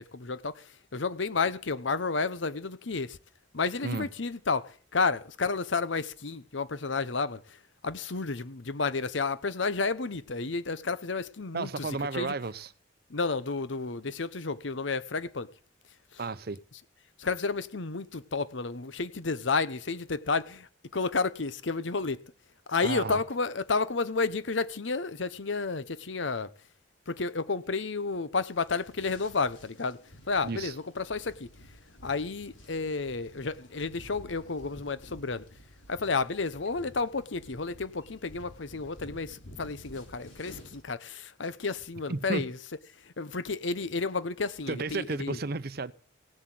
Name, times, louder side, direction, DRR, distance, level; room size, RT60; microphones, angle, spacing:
voice 1, 0.0-3.2 3.5-12.3 13.1-15.5 16.1-16.2 17.2-22.2 22.7-26.5 27.1-30.0 30.3-31.5 32.0-35.4 35.9-42.6 43.0-45.4, left 4 dB, 70° left, 0.9 m, -31 dB
voice 2, 11.5-12.7 16.2-16.6 22.8-23.2 30.4-30.7 42.1-42.5 44.7-45.9, right 3 dB, 50° right, 0.7 m, -33 dB
sound 1, 28.4-40.8, equal, 85° left, 6.2 m, -52 dB
17.0 x 7.6 x 7.7 m
head